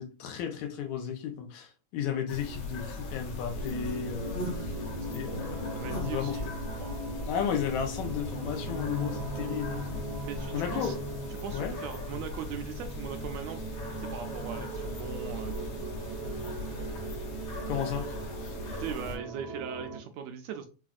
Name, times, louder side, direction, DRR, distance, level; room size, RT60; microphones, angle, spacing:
voice 1, 0.0-4.5 5.1-6.4 7.3-9.8 10.5-11.0 11.5-11.8 17.7-18.1, left 8 dB, 85° left, 2.1 m, -33 dB
sound 1, 2.3-19.2, left 2 dB, 65° left, 1.6 m, -39 dB
sound 2, 3.5-20.0, right 2 dB, 60° right, 1.1 m, -39 dB
voice 2, 4.8-6.5 6.8-7.0 10.2-10.9 11.4-13.6 14.0-15.7 18.7-20.7, right 8 dB, 80° right, 1.6 m, -40 dB
5.5 x 2.4 x 2.4 m
omnidirectional pair, 3.3 m